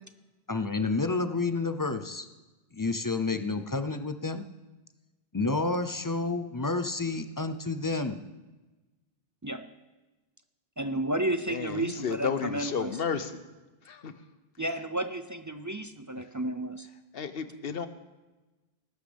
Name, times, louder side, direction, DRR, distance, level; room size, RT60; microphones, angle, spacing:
voice 1, 0.5-2.3 2.7-4.5 5.3-8.2, left 3 dB, 25° left, 8 dB, 0.5 m, -30 dB
voice 2, 10.8-13.0 14.6-16.9, right 1 dB, 30° right, 9 dB, 0.4 m, -32 dB
voice 3, 11.5-13.4 13.9-14.1 17.1-17.9, left 6 dB, 70° left, 11 dB, 1.0 m, -32 dB
19.0 x 11.5 x 3.5 m, 1.1 s
omnidirectional pair, 1.0 m